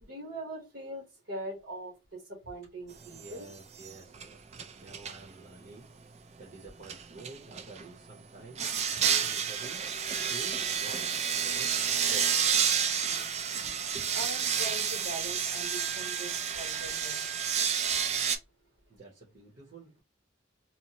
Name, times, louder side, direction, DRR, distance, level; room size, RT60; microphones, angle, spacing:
voice 1, 0.0-1.9 2.5-3.5 14.1-17.2, right 1 dB, 75° right, -1 dB, 1.0 m, -41 dB
voice 2, 3.0-8.7 9.2-9.8 10.3-12.3 13.9-14.1 18.9-20.0, right 3 dB, 55° right, -4 dB, 0.8 m, -49 dB
sound 1, 3.2-3.5 3.8-5.2 6.8-7.8 8.6-18.4, right 7 dB, 35° right, 0.3 m, -30 dB
2.9 x 2.1 x 2.8 m, 0.25 s
head